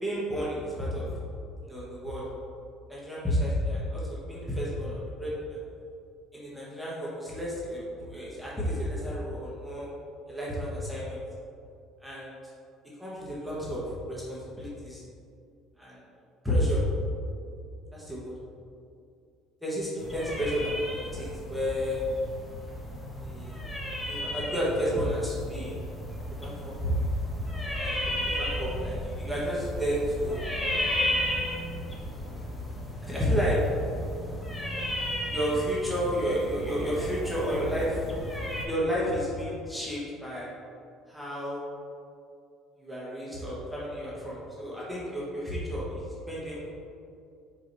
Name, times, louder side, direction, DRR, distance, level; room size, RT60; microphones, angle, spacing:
voice 1, 0.0-1.1 1.6-2.2 2.9-5.6 6.3-9.9 10.3-11.2 12.0-12.4 13.0-15.0 15.8-16.0 16.4-16.8 17.9-18.3 19.6-22.0 23.2-23.6 24.0-25.8 26.4-26.9 27.8-27.9 28.4-30.4 33.0-33.6 35.2-38.1 38.6-40.5 41.1-41.6 42.8-46.7, equal, ahead, -7 dB, 1.3 m, -31 dB
sound 1, 20.0-38.6, left 1 dB, 15° left, 1.0 m, -34 dB
4.9 x 4.9 x 4.0 m, 2.4 s
cardioid pair, 130°, 0 cm